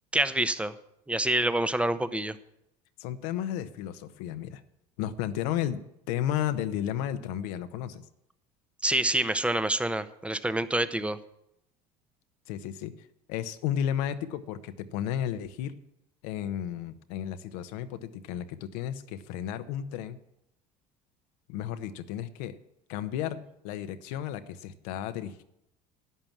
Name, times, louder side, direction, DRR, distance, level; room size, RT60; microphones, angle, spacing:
voice 1, 0.1-0.7 1.1-2.4 8.8-11.2, right 1 dB, 5° right, 13 dB, 0.9 m, -27 dB
voice 2, 3.0-4.6 5.0-5.8 6.1-8.0 12.5-15.7 16.2-20.2 21.5-22.6 22.9-25.4, left 10 dB, 70° left, 10 dB, 1.0 m, -33 dB
11.5 x 9.0 x 7.3 m, 0.83 s
hypercardioid pair, 75°, 21 cm